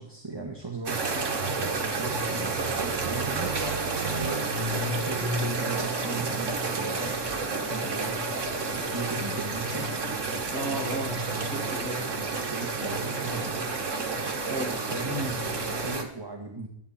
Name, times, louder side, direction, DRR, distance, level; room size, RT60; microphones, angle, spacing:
voice 1, 0.0-3.5 4.1-7.2 7.5-8.4 8.7-9.9 12.1-13.7 14.9-15.3 15.7-16.7, right 3 dB, 15° right, 1 dB, 1.6 m, -38 dB
sound 1, 0.9-16.0, right 3 dB, 55° right, 1.9 m, -30 dB
voice 2, 10.5-12.2 14.5-14.8 15.1-15.4, right 1 dB, 5° left, -4 dB, 4.7 m, -34 dB
24.0 x 8.9 x 4.3 m, 0.70 s
omnidirectional pair, 1.6 m